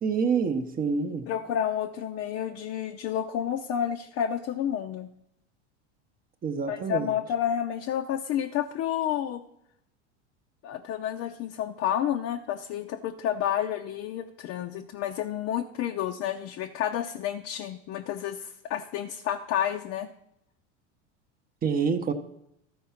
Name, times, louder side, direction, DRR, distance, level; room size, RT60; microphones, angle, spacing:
voice 1, 0.0-1.2 6.4-7.1 21.6-22.1, right 5 dB, 25° right, 8 dB, 0.9 m, -27 dB
voice 2, 1.3-5.1 6.7-9.4 10.6-20.1, left 10 dB, 40° left, 3 dB, 0.6 m, -30 dB
13.5 x 4.7 x 5.7 m, 0.79 s
supercardioid pair, 125°, 36 cm